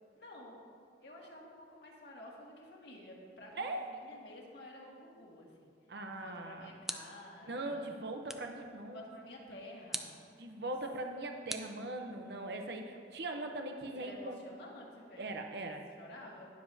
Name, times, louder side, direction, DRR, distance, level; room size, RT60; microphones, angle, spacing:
voice 1, 0.1-0.6 1.0-5.7 6.1-8.0 8.8-10.2 10.6-10.7 14.0-16.5, left 1 dB, 65° left, -2 dB, 1.8 m, -52 dB
voice 2, 5.9-6.7 7.4-9.0 10.4-14.4 15.2-15.8, right 2 dB, 60° right, 4 dB, 0.7 m, -40 dB
sound 1, 6.2-7.4 8.3-8.6 9.9-10.3 11.5-12.4, right 1 dB, ahead, 0.3 m, -43 dB
19.5 x 7.0 x 2.7 m, 2.2 s
head